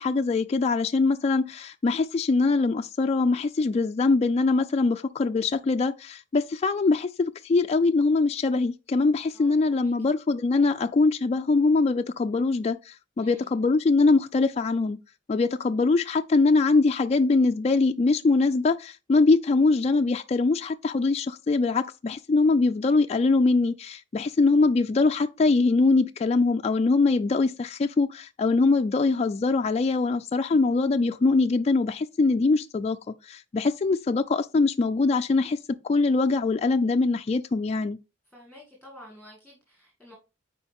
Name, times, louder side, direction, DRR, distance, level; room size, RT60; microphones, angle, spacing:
voice 1, 0.0-15.0 15.3-35.6 35.8-38.0, left 3 dB, 35° left, 0.3 m, -23 dB
voice 2, 9.3-9.9 13.2-13.5 38.3-40.2, left 1 dB, 5° right, 2.2 m, -50 dB
9.6 x 4.5 x 3.5 m
head